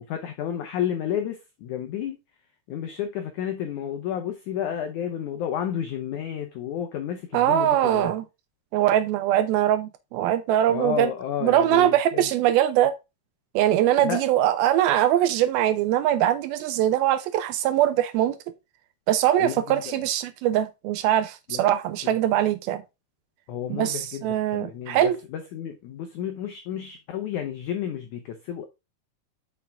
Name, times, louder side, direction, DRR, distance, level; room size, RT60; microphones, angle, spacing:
voice 1, 0.0-2.2 2.7-8.1 10.7-12.3 14.0-14.2 19.4-19.9 21.5-21.7 22.1-22.2 23.5-28.7, left 9 dB, 85° left, 1.7 m, -31 dB
voice 2, 7.3-8.2 8.7-11.1 11.4-12.9 13.6-18.4 19.1-22.8 23.7-25.2, right 12 dB, 80° right, 2.3 m, -22 dB
6.6 x 5.8 x 3.4 m
omnidirectional pair, 4.6 m